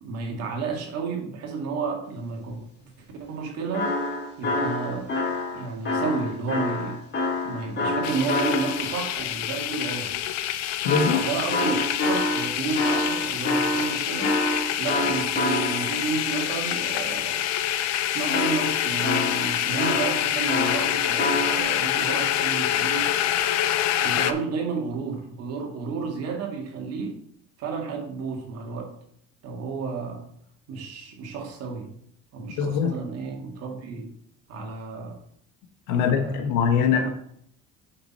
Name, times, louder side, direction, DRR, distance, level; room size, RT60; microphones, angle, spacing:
voice 1, 0.0-2.6 3.2-4.0 4.4-5.1 5.5-7.0 7.4-10.2 11.2-14.4 14.8-17.4 18.0-23.1 24.0-27.2 27.6-29.0 29.4-30.3 30.7-31.9 32.3-34.1 34.5-35.2 35.9-36.4 36.8-37.1, right 5 dB, 60° right, 2.0 m, -31 dB
sound 1, 3.7-9.0 10.8-16.1 18.3-21.6, left 2 dB, 35° left, 2.2 m, -27 dB
sound 2, 8.0-24.3, left 12 dB, 65° left, 0.7 m, -26 dB
voice 2, 10.8-11.3 32.6-32.9 35.9-37.1, left 6 dB, 85° left, 1.3 m, -22 dB
6.7 x 5.9 x 4.3 m
cardioid pair, 130°, 29 cm